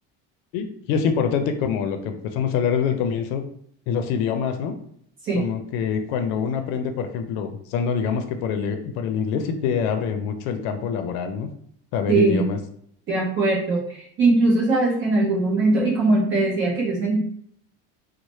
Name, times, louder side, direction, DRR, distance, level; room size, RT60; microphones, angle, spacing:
voice 1, 0.5-3.4 3.9-4.8 5.3-11.5 11.9-12.6, left 7 dB, 85° left, 7 dB, 0.5 m, -25 dB
voice 2, 12.1-12.5 13.1-17.4, right 2 dB, 35° right, -3 dB, 0.7 m, -21 dB
3.1 x 2.1 x 4.1 m, 0.65 s
cardioid pair, 165°, 34 cm